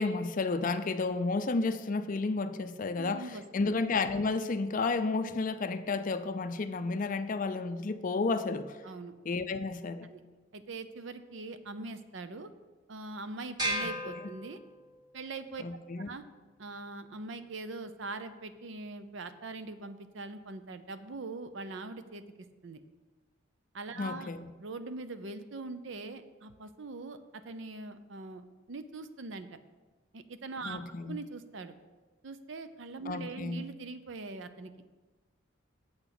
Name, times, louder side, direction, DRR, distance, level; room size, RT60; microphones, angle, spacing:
voice 1, 0.0-8.8 9.3-10.1 13.8-14.3 15.6-16.1 24.0-24.5 30.6-31.2 33.1-33.6, left 3 dB, 40° left, 10 dB, 0.4 m, -32 dB
voice 2, 3.0-3.7 8.8-9.1 10.0-10.2 10.5-12.5 12.9-14.6 15.1-15.6 16.1-16.2 16.6-22.2 22.6-22.8 23.7-24.3 24.6-29.5 30.1-30.8 31.1-31.7 32.2-34.8, right 3 dB, 65° right, 10 dB, 0.6 m, -42 dB
sound 1, 13.6-15.1, right 1 dB, 20° right, 2.1 m, -35 dB
7.8 x 6.1 x 5.9 m, 1.3 s
head